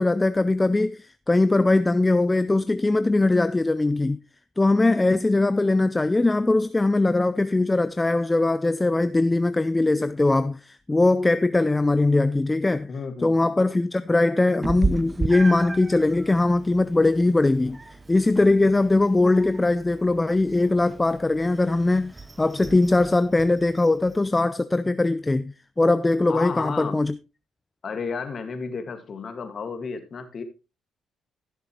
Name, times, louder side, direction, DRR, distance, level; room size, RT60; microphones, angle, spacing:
voice 1, 0.0-4.2 4.6-12.9 13.2-17.8 18.1-27.1, left 2 dB, 15° left, 0.4 m, -21 dB
voice 2, 12.9-13.6 26.3-27.0 27.8-30.4, left 5 dB, 45° left, 1.9 m, -32 dB
Meow, 14.6-24.3, right 3 dB, 20° right, 0.7 m, -35 dB
15.5 x 6.8 x 3.1 m
cardioid pair, 90°, 0 cm